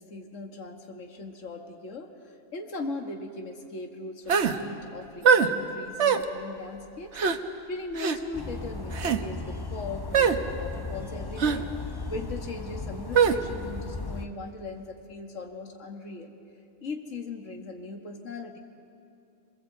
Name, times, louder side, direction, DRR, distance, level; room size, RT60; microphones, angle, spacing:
voice 1, 0.0-7.2 7.7-11.7 12.1-16.4 16.8-18.6, left 3 dB, 65° left, 3 dB, 2.0 m, -39 dB
sound 1, 4.3-4.6 5.2-5.5 6.0-6.2 7.1-7.4 8.0-8.2 8.9-9.2 10.1-10.4 11.4-11.6 13.1-13.4, right 6 dB, 60° right, 1.2 m, -21 dB
sound 2, 8.3-14.3, left 3 dB, 20° left, 0.8 m, -36 dB
26.0 x 22.0 x 8.0 m, 2.6 s
omnidirectional pair, 1.4 m